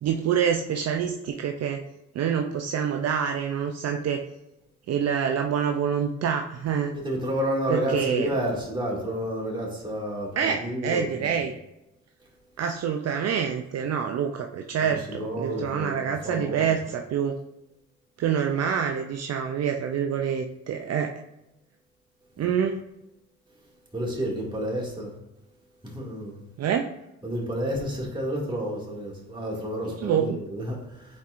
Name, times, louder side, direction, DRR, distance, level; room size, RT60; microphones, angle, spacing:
voice 1, 0.0-1.8 2.1-4.2 4.9-6.9 7.7-8.3 10.4-11.5 12.6-17.3 18.2-21.1 22.4-22.8 26.6-26.9 30.0-30.4, right 7 dB, 55° right, 0.5 m, -26 dB
voice 2, 6.9-11.3 14.8-16.0 16.2-16.8 22.4-22.5 23.9-25.2 25.8-26.4 27.2-31.2, equal, 15° right, 2.2 m, -30 dB
9.3 x 4.3 x 2.5 m
cardioid pair, 90°, 30 cm